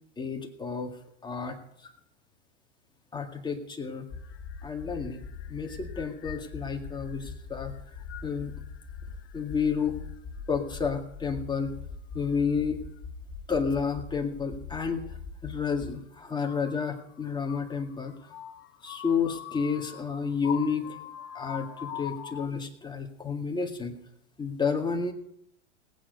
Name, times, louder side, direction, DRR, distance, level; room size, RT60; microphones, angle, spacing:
voice 1, 0.2-1.0 1.2-1.9 3.1-4.1 4.6-5.2 5.5-7.7 8.2-8.5 9.3-10.0 10.5-11.7 12.1-12.8 13.5-15.2 15.4-18.1 18.8-21.0 21.3-24.0 24.4-25.1, left 5 dB, 10° left, 3 dB, 2.0 m, -30 dB
sound 1, 4.1-15.9 16.4-22.5, left 7 dB, 35° left, 1.3 m, -42 dB
19.0 x 9.0 x 5.3 m, 0.71 s
hypercardioid pair, 115°, 36 cm